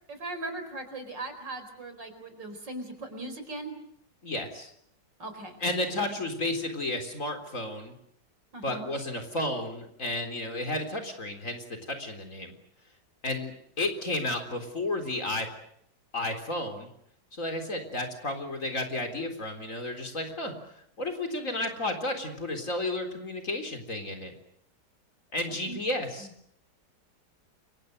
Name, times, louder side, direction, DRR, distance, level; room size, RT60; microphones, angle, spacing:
voice 1, 0.1-3.8 5.2-5.6 8.5-8.9 25.5-26.3, right 2 dB, 85° right, 8 dB, 5.2 m, -39 dB
voice 2, 4.2-4.7 5.6-7.9 8.6-12.5 13.2-15.5 16.1-16.9 17.3-20.5 21.0-24.3 25.3-26.3, left 2 dB, 45° left, 5 dB, 4.3 m, -32 dB
29.0 x 25.0 x 6.7 m, 0.72 s
omnidirectional pair, 1.9 m